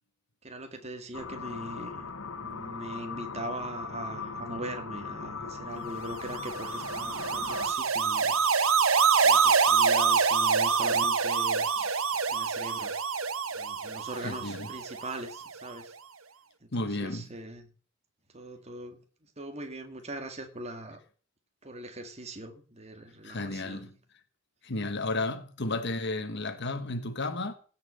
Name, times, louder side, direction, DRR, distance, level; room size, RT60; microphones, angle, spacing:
voice 1, 0.4-2.1 2.4-8.4 9.2-12.0 12.3-12.9 13.5-16.0 16.6-17.7 18.3-19.0 19.4-21.0 21.6-23.9, right 1 dB, 30° right, 1.9 m, -41 dB
sound 1, 1.1-7.7, left 5 dB, 90° left, 1.6 m, -39 dB
sound 2, 6.2-15.4, right 5 dB, 90° right, 1.1 m, -26 dB
voice 2, 14.2-14.7 16.7-17.3 23.2-23.9 24.6-27.5, left 2 dB, 55° left, 1.3 m, -33 dB
17.0 x 5.8 x 7.8 m
head